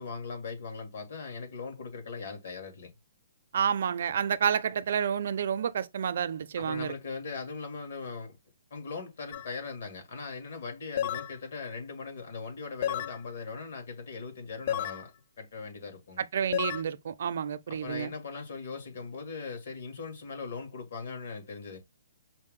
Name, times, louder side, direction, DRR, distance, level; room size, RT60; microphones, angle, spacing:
voice 1, 0.0-2.9 6.6-8.4 8.7-16.2 17.7-21.8, left 4 dB, 55° left, 1.9 m, -40 dB
voice 2, 3.5-6.9 16.2-18.1, right 8 dB, 55° right, 0.5 m, -29 dB
sound 1, 9.3-9.5 11.0-11.3 12.8-13.2 14.7-15.0 16.5-16.8, left 11 dB, 40° left, 0.3 m, -31 dB
5.5 x 2.1 x 3.7 m
hypercardioid pair, 165°, 0 cm